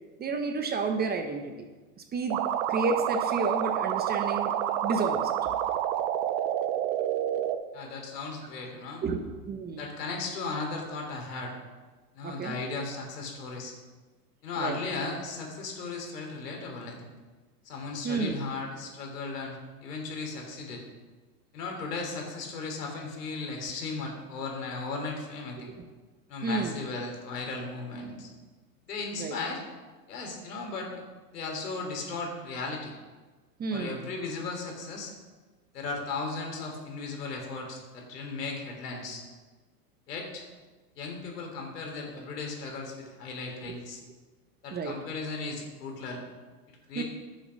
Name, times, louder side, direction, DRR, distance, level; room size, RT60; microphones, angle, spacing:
voice 1, 0.2-1.5 2.1-2.4 2.7-4.5 4.8-5.3 5.7-5.8 9.0-9.2 9.5-9.8 12.2-12.5 14.6-14.8 18.0-18.4 26.4-26.8 29.2-29.4 33.6-34.0 43.7-43.8 44.7-45.0 47.0-47.1, right 4 dB, 20° right, 6 dB, 1.0 m, -30 dB
sound 1, 2.3-7.6, right 11 dB, 45° right, 0.9 m, -28 dB
voice 2, 7.7-9.0 9.8-11.6 12.1-13.7 14.4-17.1 17.6-20.8 21.5-25.7 26.3-28.3 28.9-29.6 30.1-31.0 31.3-32.9 33.7-35.1 35.7-39.2 40.1-40.5 41.0-44.0 44.6-46.2 46.9-47.0, left 3 dB, 80° left, 2 dB, 3.5 m, -36 dB
10.5 x 7.1 x 6.4 m, 1.3 s
hypercardioid pair, 115°, 47 cm